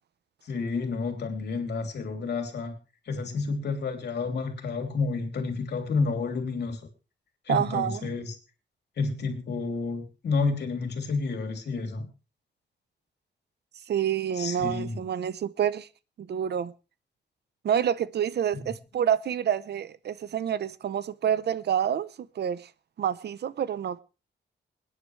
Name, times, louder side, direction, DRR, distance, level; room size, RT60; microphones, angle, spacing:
voice 1, 0.4-2.7 3.1-6.8 7.5-8.3 9.0-12.1 14.4-15.0, left 4 dB, 65° left, 3.2 m, -30 dB
voice 2, 7.5-8.0 13.9-15.9 16.2-16.7 17.6-22.1 22.4-22.7 23.0-24.0, right 9 dB, 65° right, 0.8 m, -28 dB
27.5 x 9.9 x 3.3 m
wide cardioid pair, 145°, 18 cm